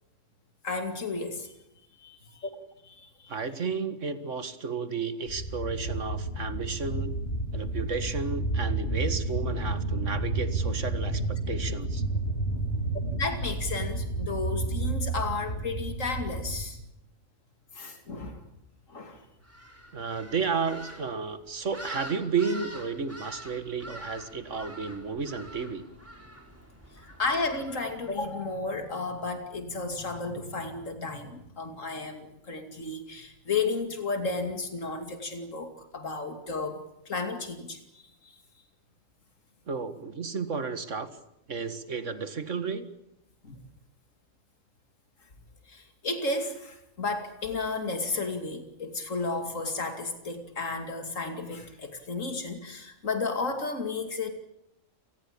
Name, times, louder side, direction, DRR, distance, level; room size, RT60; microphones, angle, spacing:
voice 1, 0.6-1.5 2.0-2.5 2.8-3.3 13.2-16.8 17.7-18.4 18.9-19.2 27.0-38.3 43.4-43.6 45.7-54.3, left 3 dB, 85° left, 7 dB, 2.9 m, -33 dB
voice 2, 3.3-7.1 7.5-12.0 19.9-25.8 39.7-41.1 41.5-42.9, right 5 dB, 75° right, 12 dB, 2.2 m, -32 dB
sound 1, 5.3-16.7, right 2 dB, 60° left, 3.5 m, -31 dB
sound 2, 19.4-28.5, equal, 10° right, 4.8 m, -46 dB
28.0 x 19.5 x 8.7 m, 0.82 s
omnidirectional pair, 1.3 m